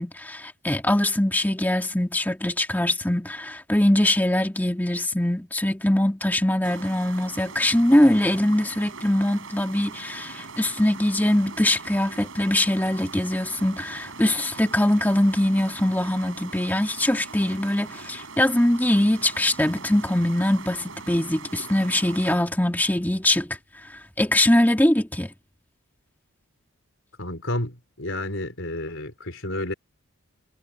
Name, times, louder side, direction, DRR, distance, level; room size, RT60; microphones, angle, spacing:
voice 1, 0.0-23.6 24.2-25.3, left 1 dB, 10° left, 2.0 m, -22 dB
sound 1, 6.6-22.4, right 4 dB, 60° right, 6.4 m, -41 dB
voice 2, 27.2-29.7, left 1 dB, 60° left, 4.8 m, -30 dB
head